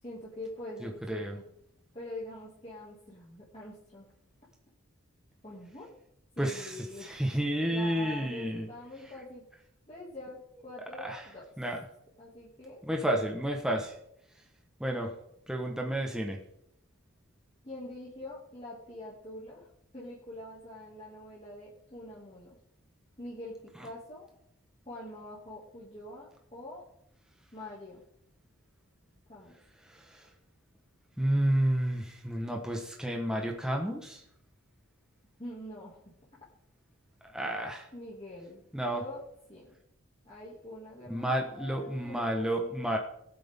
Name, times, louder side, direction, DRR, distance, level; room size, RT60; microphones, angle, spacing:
voice 1, 0.0-1.4 1.9-4.1 5.4-5.9 6.4-7.1 7.7-9.4 9.9-11.5 12.2-12.8 17.6-19.7 19.9-22.6 23.2-24.3 24.9-26.9 27.5-28.0 29.3-29.5 35.4-36.0 37.9-39.2 39.5-39.8 40.2-43.0, left 1 dB, 25° left, -7 dB, 2.4 m, -44 dB
voice 2, 0.8-1.3 6.4-8.7 11.0-11.2 11.6-11.8 12.8-13.9 14.8-15.1 15.5-16.4 29.9-30.2 31.2-34.2 37.2-37.9 38.7-39.0 41.1-43.0, right 1 dB, 5° right, 1 dB, 1.3 m, -31 dB
19.5 x 8.2 x 3.7 m, 0.76 s
head